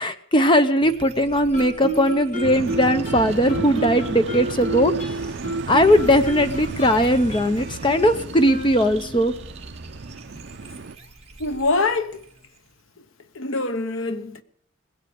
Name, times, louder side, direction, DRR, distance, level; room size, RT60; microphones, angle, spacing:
voice 1, 0.0-4.9 5.7-9.3, equal, 25° left, 0.7 m, -19 dB
sound 1, 0.8-12.8, right 3 dB, 30° right, 1.3 m, -44 dB
Guitar, 1.5-9.2, right 2 dB, 40° left, 3.9 m, -31 dB
sound 2, 2.4-10.9, right 4 dB, 55° right, 0.5 m, -34 dB
voice 2, 11.4-12.2 13.3-14.4, left 3 dB, 75° left, 1.0 m, -24 dB
19.5 x 8.2 x 6.7 m
head